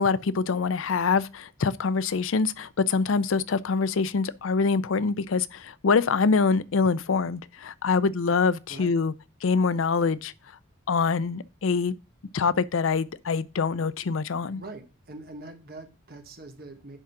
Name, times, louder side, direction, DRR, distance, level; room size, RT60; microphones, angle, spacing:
voice 1, 0.0-9.1 9.4-10.3 10.9-11.9 12.3-14.6, left 4 dB, 85° left, 0.5 m, -25 dB
voice 2, 14.5-17.0, right 2 dB, 50° right, 1.4 m, -43 dB
10.0 x 3.7 x 5.8 m
head